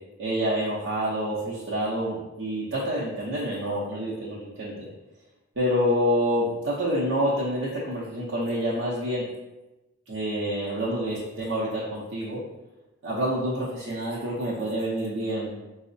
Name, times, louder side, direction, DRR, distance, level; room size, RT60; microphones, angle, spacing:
voice 1, 0.2-4.7 5.6-9.2 10.1-12.4 13.0-15.7, equal, 65° right, -8 dB, 0.7 m, -27 dB
4.6 x 2.0 x 2.6 m, 1.0 s
head